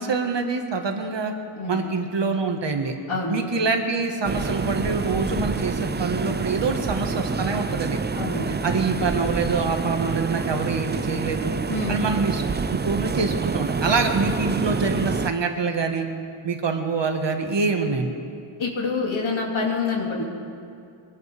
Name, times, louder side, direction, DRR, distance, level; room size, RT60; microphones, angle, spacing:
voice 1, 0.0-1.3 1.7-3.0 3.3-8.0 8.5-11.5 11.9-16.1 16.4-18.1, right 4 dB, 60° right, 4 dB, 1.5 m, -25 dB
voice 2, 3.1-3.4 8.2-8.5 11.7-12.0 18.6-20.2, left 4 dB, 75° left, -1 dB, 2.4 m, -26 dB
sound 1, 4.2-15.3, right 4 dB, 25° right, 0.4 m, -27 dB
23.5 x 18.0 x 3.4 m, 2.4 s
wide cardioid pair, 130°, 48 cm